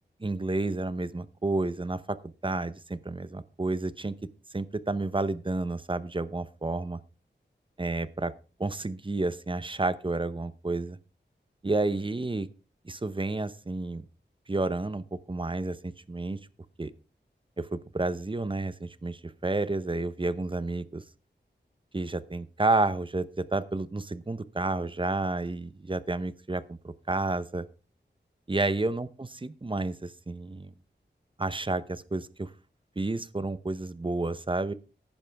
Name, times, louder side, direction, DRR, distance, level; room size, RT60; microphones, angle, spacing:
voice 1, 0.2-4.2 4.5-7.0 7.8-8.3 8.6-11.0 11.6-12.5 12.8-14.0 14.5-16.4 16.8-16.9 17.6-21.0 21.9-27.7 28.5-30.7 31.4-32.5 33.0-34.7, right 2 dB, 25° right, 14 dB, 0.8 m, -30 dB
14.5 x 10.5 x 3.4 m, 0.33 s
wide cardioid pair, 80°, 19 cm